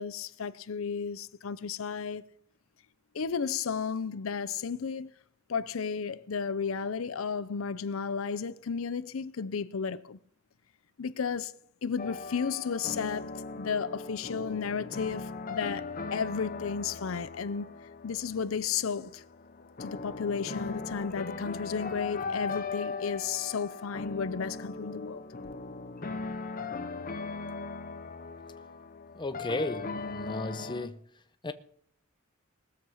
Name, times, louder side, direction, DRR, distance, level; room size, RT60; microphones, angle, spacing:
voice 1, 0.0-2.2 3.1-5.1 5.5-10.2 11.0-11.6 11.8-17.7 18.0-19.2 19.8-25.3, left 6 dB, 75° left, 0.6 m, -33 dB
sound 1, 12.0-30.9, left 4 dB, 45° left, 0.9 m, -39 dB
voice 2, 29.2-31.0 31.4-31.5, left 2 dB, 25° left, 0.8 m, -34 dB
19.0 x 7.2 x 6.3 m
head